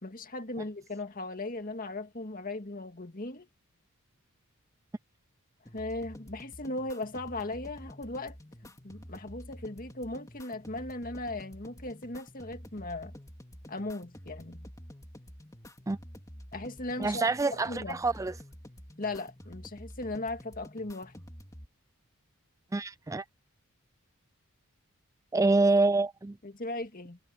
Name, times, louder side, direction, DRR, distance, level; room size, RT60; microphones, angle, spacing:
voice 1, 0.0-3.5 5.7-8.4 8.6-13.1 13.7-14.7 16.5-17.2 17.5-18.0 19.0-21.1 26.4-27.2, left 2 dB, 40° left, 2.1 m, -38 dB
sound 1, 5.6-21.7, equal, 15° left, 2.7 m, -49 dB
voice 2, 17.0-18.3 22.7-23.2 25.3-26.4, right 3 dB, 15° right, 0.4 m, -26 dB
head